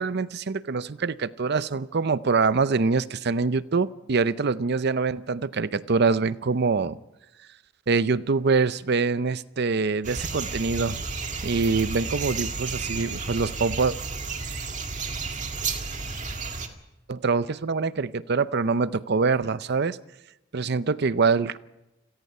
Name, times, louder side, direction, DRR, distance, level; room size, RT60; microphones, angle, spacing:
voice 1, 0.0-7.0 7.9-11.0 11.4-14.0 17.1-20.0 20.5-21.6, right 4 dB, 55° right, 16 dB, 0.6 m, -24 dB
sound 1, 10.0-16.7, right 4 dB, 40° right, 1.9 m, -32 dB
28.5 x 18.0 x 5.5 m, 0.98 s
head